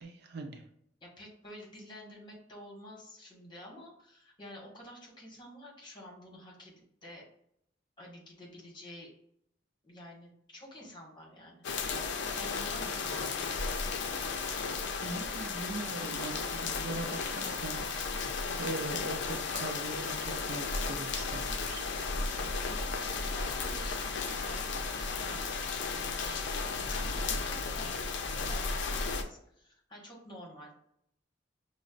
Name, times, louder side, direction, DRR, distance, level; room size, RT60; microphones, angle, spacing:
voice 1, 0.0-0.6 15.0-21.9, right 2 dB, 60° right, 5 dB, 0.5 m, -41 dB
voice 2, 1.0-7.2 8.0-9.1 9.8-11.6 12.3-13.4 23.0-25.0 25.2-30.8, left 1 dB, 25° left, -3 dB, 1.3 m, -49 dB
sound 1, 11.6-29.2, left 4 dB, 65° left, 0.5 m, -34 dB
6.0 x 2.1 x 2.4 m, 0.71 s
head